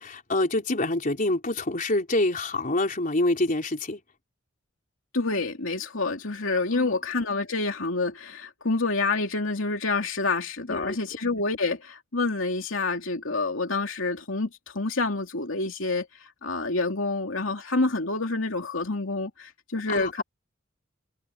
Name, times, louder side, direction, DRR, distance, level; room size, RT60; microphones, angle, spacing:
voice 1, 0.0-4.0 6.7-7.0 10.7-11.0 19.9-20.2, left 2 dB, 45° left, 3.9 m, -26 dB
voice 2, 5.1-20.2, left 3 dB, 75° left, 2.9 m, -28 dB
head